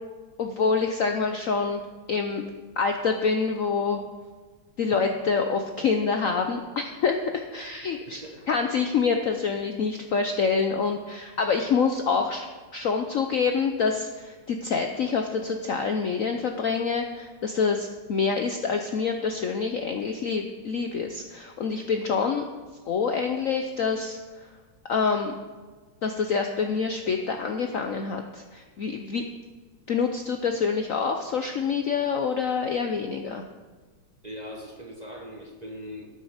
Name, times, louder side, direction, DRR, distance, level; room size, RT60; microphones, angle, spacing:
voice 1, 0.4-1.8 2.1-2.4 2.8-4.0 4.8-12.5 12.7-22.4 22.9-24.2 24.9-25.3 26.0-29.2 29.9-33.4, left 5 dB, 85° left, 5 dB, 0.7 m, -26 dB
voice 2, 7.8-8.7 34.2-36.1, equal, 25° right, 1 dB, 1.0 m, -41 dB
12.5 x 9.6 x 5.0 m, 1.4 s
omnidirectional pair, 2.4 m